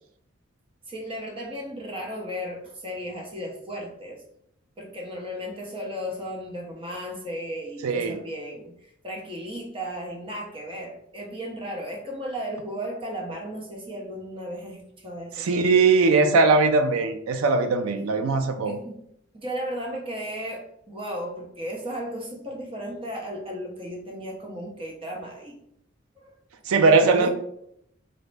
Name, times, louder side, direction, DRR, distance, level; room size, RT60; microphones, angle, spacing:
voice 1, 0.9-4.2 4.8-15.8 18.7-19.0 19.3-25.6 26.2-26.3 27.0-27.3, equal, 25° right, -1 dB, 0.7 m, -35 dB
voice 2, 7.8-8.2 15.4-18.8 26.7-27.3, right 4 dB, 85° right, 7 dB, 0.4 m, -20 dB
3.9 x 2.1 x 3.2 m, 0.74 s
head